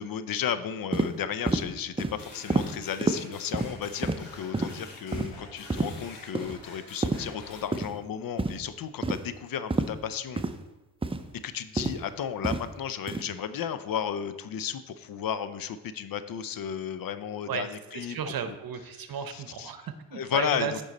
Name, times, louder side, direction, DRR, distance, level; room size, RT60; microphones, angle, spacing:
voice 1, 0.0-10.4 11.4-18.2 18.5-18.6 19.3-19.7 20.1-20.8, left 8 dB, 55° left, 12 dB, 0.6 m, -33 dB
sound 1, 0.9-1.1 1.5-1.7 2.0-2.2 2.5-2.7 3.0-3.2 3.5-3.7 4.0-4.2 4.5-4.7 5.1-5.3 5.7-5.9 6.3-6.6 7.0-7.2 7.7-7.9 8.4-8.6 9.0-9.2 9.7-9.9 10.4-10.5 11.0-11.2 11.8-12.0 12.4-12.6 13.1-13.2, right 3 dB, 15° right, 0.6 m, -27 dB
sound 2, 2.2-7.6, left 3 dB, 75° left, 2.4 m, -47 dB
voice 2, 17.5-20.7, right 7 dB, 55° right, 9 dB, 0.9 m, -34 dB
8.8 x 5.4 x 4.1 m, 1.1 s
supercardioid pair, 60°, 42 cm